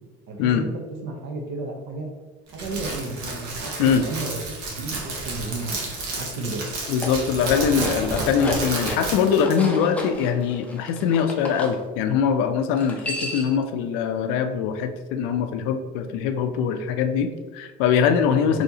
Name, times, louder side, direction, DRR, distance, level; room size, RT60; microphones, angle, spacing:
voice 1, 0.3-2.1 2.5-4.4 4.7-5.9 6.1-6.7 18.4-18.6, right 3 dB, 60° right, 3 dB, 0.8 m, -33 dB
Crackle, 2.5-9.6, right 2 dB, 80° right, 1.1 m, -31 dB
sound 1, 6.8-11.7 12.7-13.6, left 1 dB, 5° left, 0.5 m, -33 dB
voice 2, 6.9-18.6, left 7 dB, 70° left, 8 dB, 0.4 m, -22 dB
4.1 x 2.8 x 2.7 m, 1.2 s
cardioid pair, 135°, 21 cm